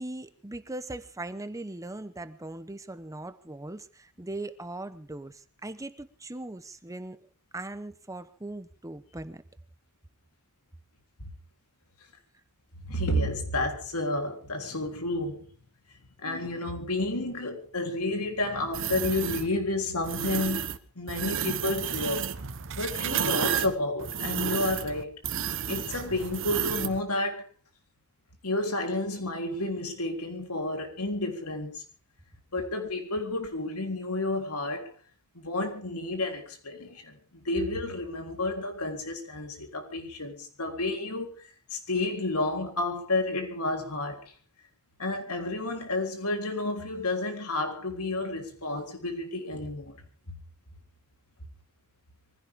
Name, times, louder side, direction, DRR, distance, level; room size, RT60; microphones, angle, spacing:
voice 1, 0.0-9.4, right 2 dB, 15° right, 0.9 m, -40 dB
voice 2, 12.8-15.5 16.2-22.3 22.8-25.1 25.7-27.5 28.4-31.8 32.5-34.9 35.3-44.3 45.0-50.0 50.3-50.4, left 2 dB, 80° left, 3.8 m, -31 dB
sound 1, 18.7-19.5 20.0-20.8 21.1-27.0, right 8 dB, 60° right, 1.2 m, -31 dB
23.5 x 16.0 x 3.7 m
head